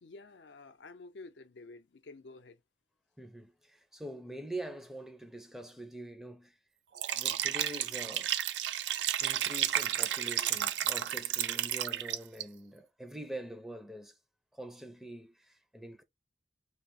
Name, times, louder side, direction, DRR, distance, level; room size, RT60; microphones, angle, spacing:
voice 1, 0.0-2.6, left 3 dB, 90° left, 0.6 m, -50 dB
voice 2, 3.2-6.6 7.1-8.3 9.2-14.1 14.5-16.0, right 1 dB, ahead, 0.4 m, -44 dB
Liquid, 6.9-12.4, right 11 dB, 85° right, 0.4 m, -32 dB
3.1 x 2.0 x 4.1 m
head